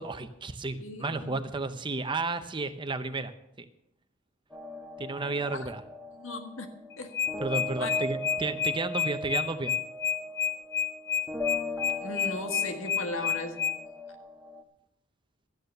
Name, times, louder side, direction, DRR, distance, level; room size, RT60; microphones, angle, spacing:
voice 1, 0.0-3.3 5.0-5.8 7.4-9.7, right 3 dB, 25° right, 10 dB, 0.7 m, -32 dB
voice 2, 0.8-1.4 5.5-5.7 6.2-6.7 7.0-7.1 7.8-7.9 12.0-13.6, left 2 dB, 85° left, 5 dB, 1.7 m, -36 dB
sound 1, 4.5-14.6, left 1 dB, ahead, 1.3 m, -39 dB
sound 2, 6.9-13.7, left 8 dB, 55° left, 1.1 m, -29 dB
13.0 x 9.3 x 6.6 m, 0.80 s
head